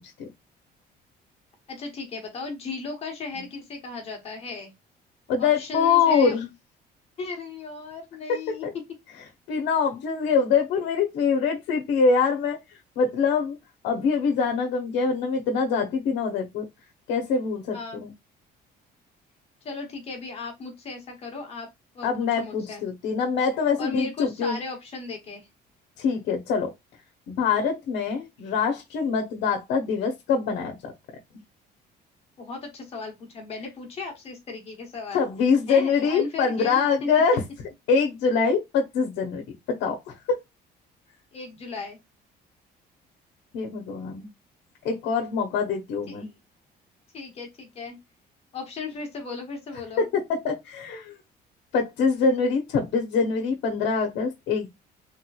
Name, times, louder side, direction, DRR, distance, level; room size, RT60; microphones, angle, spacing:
voice 1, 1.7-4.7 5.4-6.4 7.2-8.7 17.7-18.0 19.6-21.7 21.9-22.8 23.8-25.5 32.4-35.3 35.7-36.9 41.3-42.0 46.1-46.3 47.1-48.0 48.5-50.0, left 4 dB, 35° left, 1.1 m, -36 dB
voice 2, 5.3-6.5 8.3-8.7 9.5-12.6 13.0-13.5 13.8-16.6 17.1-18.1 22.0-24.6 26.0-26.7 27.3-30.9 35.1-37.4 37.9-39.4 39.7-40.4 43.5-44.3 44.8-46.3 50.0-51.2 51.7-54.7, left 5 dB, 85° left, 0.8 m, -24 dB
3.4 x 3.0 x 2.2 m
cardioid pair, 175°, 18 cm